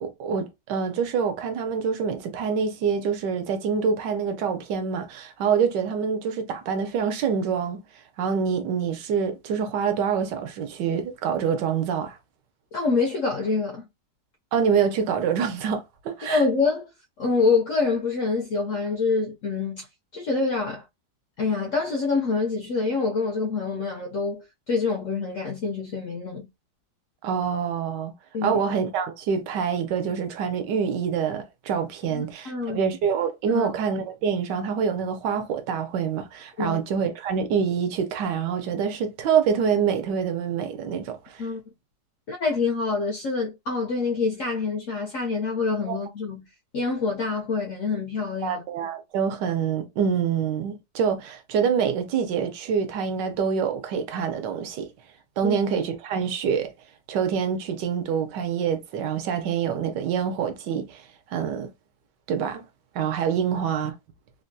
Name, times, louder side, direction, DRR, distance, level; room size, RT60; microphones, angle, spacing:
voice 1, 0.0-7.8 8.2-12.2 14.5-16.4 27.2-28.1 28.4-41.4 45.9-46.0 48.4-54.9 55.4-56.7 57.1-61.0 61.3-61.7 62.3-62.6 62.9-63.9, right 7 dB, 75° right, 1.3 m, -26 dB
voice 2, 12.7-13.9 16.3-16.9 17.2-19.9 20.1-20.8 21.4-26.5 28.3-28.6 32.1-32.8 33.5-33.7 36.6-36.8 41.4-41.6 42.3-46.4 46.7-48.6 55.4-55.6, left 4 dB, 70° left, 0.7 m, -26 dB
3.4 x 2.2 x 2.6 m
omnidirectional pair, 1.9 m